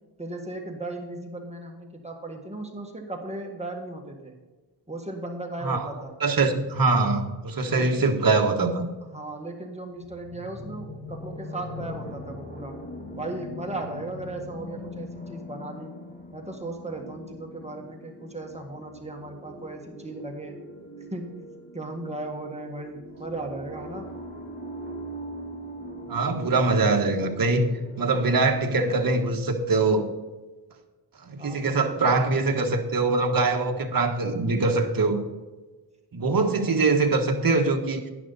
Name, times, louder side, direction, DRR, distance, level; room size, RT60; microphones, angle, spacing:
voice 1, 0.2-4.4 4.9-6.1 7.7-8.1 9.1-12.8 13.1-15.9 16.3-20.6 21.1-21.4 21.7-24.1 31.4-31.9 36.6-36.8, right 2 dB, 15° right, 1 dB, 1.7 m, -36 dB
voice 2, 6.2-8.8 26.1-30.1 31.2-35.2 36.1-38.0, right 3 dB, 50° right, 4 dB, 1.4 m, -23 dB
sound 1, 10.0-28.7, equal, 20° left, 1.7 m, -41 dB
11.0 x 10.5 x 4.1 m, 1.2 s
wide cardioid pair, 115°, 44 cm